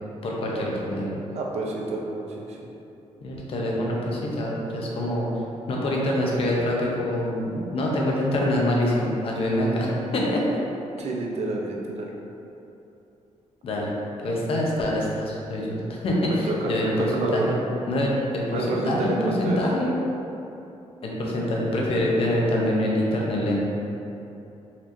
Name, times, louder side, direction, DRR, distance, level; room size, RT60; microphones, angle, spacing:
voice 1, 0.2-1.1 3.2-5.3 5.7-10.4 13.6-13.9 14.2-17.5 17.9-19.9 21.0-23.6, left 1 dB, 50° left, -3 dB, 0.6 m, -25 dB
voice 2, 1.3-2.7 11.0-12.1 16.3-17.6 18.5-19.6, right 2 dB, 65° right, -1 dB, 0.5 m, -29 dB
4.2 x 3.0 x 2.6 m, 2.9 s
wide cardioid pair, 155°, 12 cm